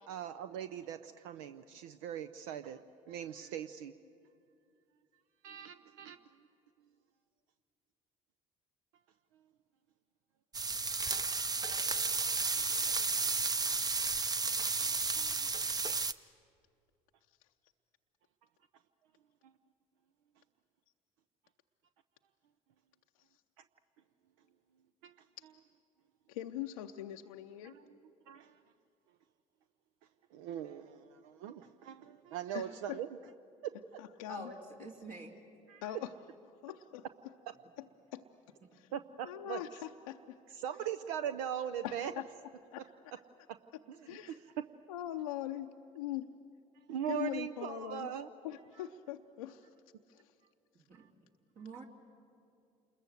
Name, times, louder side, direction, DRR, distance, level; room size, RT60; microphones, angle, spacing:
voice 1, 0.1-2.8 3.1-3.9 5.4-6.2 12.2-12.3 12.6-12.7 14.8-15.5 19.4-19.5 25.0-25.1 27.6-27.8 28.3-28.6 30.3-33.1 33.6-34.0 35.7-35.8 38.9-39.6 40.6-42.1 43.9-44.3 46.9-48.3 50.9-51.1, right 9 dB, 75° right, 11 dB, 0.6 m, -41 dB
sound 1, 10.5-16.1, right 4 dB, 25° right, 0.7 m, -32 dB
voice 2, 26.3-27.7 32.5-33.0 34.0-34.5 35.8-36.1 36.6-37.1 37.8-37.9 38.1-38.3 38.7-38.9 39.2-40.4 41.8-42.3 42.7-42.9 44.1-44.4 44.9-46.3 47.1-48.1 48.4-49.7 50.1-50.3, left 13 dB, 85° left, 5 dB, 0.6 m, -42 dB
voice 3, 34.3-35.3 38.6-38.8 50.7-51.1 51.5-51.8, right 2 dB, 55° right, -1 dB, 2.8 m, -47 dB
27.5 x 21.5 x 7.9 m, 2.5 s
hypercardioid pair, 60°, 17 cm